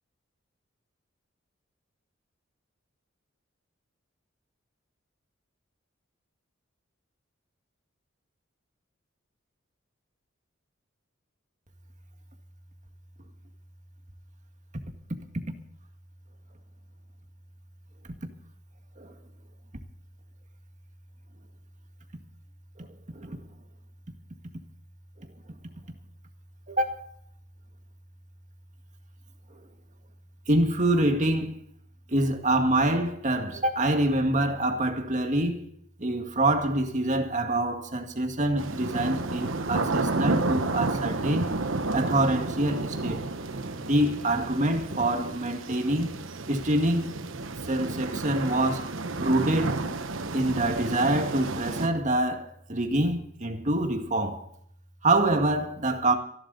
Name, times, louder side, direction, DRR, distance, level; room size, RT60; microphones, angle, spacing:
voice 1, 22.8-23.5 25.2-25.3 26.7-27.1 30.5-31.6 32.1-35.7 36.0-41.5 41.9-43.2 43.8-46.1 46.5-47.1 47.6-48.9 49.2-49.8 50.3-54.5 55.0-56.2, right 1 dB, 40° right, 2.0 m, -26 dB
sound 1, 38.6-51.9, right 3 dB, 70° right, 1.1 m, -31 dB
25.5 x 12.0 x 4.1 m
head